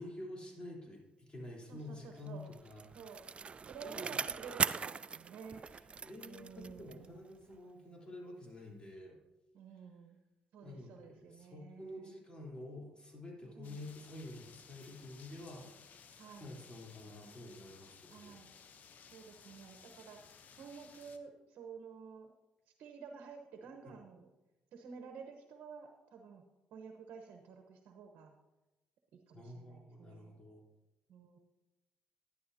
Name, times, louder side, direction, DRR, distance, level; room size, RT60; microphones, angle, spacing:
voice 1, 0.0-2.9 3.8-4.5 6.0-9.2 10.6-16.1 16.4-18.4 23.8-24.0 29.3-30.6, left 1 dB, 30° left, -2 dB, 3.7 m, -49 dB
voice 2, 1.7-2.5 2.9-3.2 3.7-5.6 6.2-7.1 9.5-10.2 10.5-12.2 13.5-13.8 16.2-16.5 18.1-18.5 19.1-22.3 22.8-24.3 24.7-26.4 26.7-28.4 29.1-30.4 31.1-31.4, right 6 dB, 70° right, 4 dB, 1.0 m, -51 dB
Bicycle, 2.3-7.2 7.5-7.6, right 5 dB, 35° right, 0.3 m, -40 dB
sound 1, 13.6-21.2, left 6 dB, 65° left, 0.9 m, -58 dB
11.5 x 11.0 x 2.8 m, 1.1 s
supercardioid pair, 65°, 3 cm